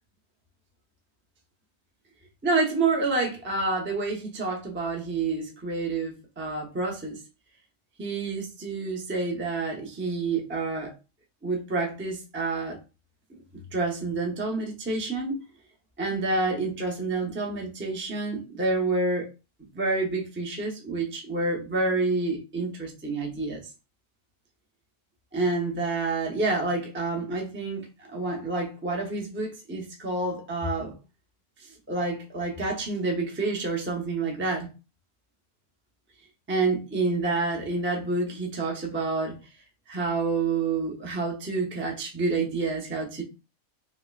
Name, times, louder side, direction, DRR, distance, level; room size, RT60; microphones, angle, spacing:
voice 1, 2.4-7.2 8.0-11.0 11.4-12.8 13.7-15.4 16.0-19.3 19.7-23.6 25.3-30.9 31.6-34.7 36.5-39.4 39.9-43.2, right 3 dB, 10° right, 0.5 m, -28 dB
5.3 x 2.1 x 2.4 m
omnidirectional pair, 1.6 m